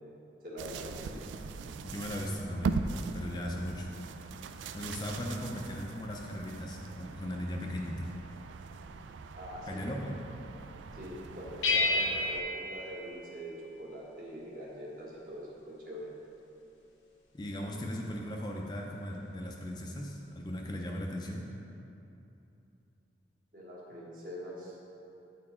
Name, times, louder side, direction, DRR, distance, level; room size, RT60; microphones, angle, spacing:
voice 1, 0.4-0.9 9.4-10.0 10.9-16.1 23.5-24.8, equal, 45° right, -5 dB, 1.4 m, -43 dB
sound 1, 0.6-12.4, right 4 dB, 80° right, 0.3 m, -41 dB
voice 2, 1.8-2.8 3.1-3.9 4.7-8.1 9.7-10.2 17.3-21.5, equal, 20° left, -1 dB, 0.4 m, -37 dB
sound 2, 11.6-13.8, left 2 dB, 90° left, 1.1 m, -31 dB
9.1 x 4.4 x 4.2 m, 2.9 s
head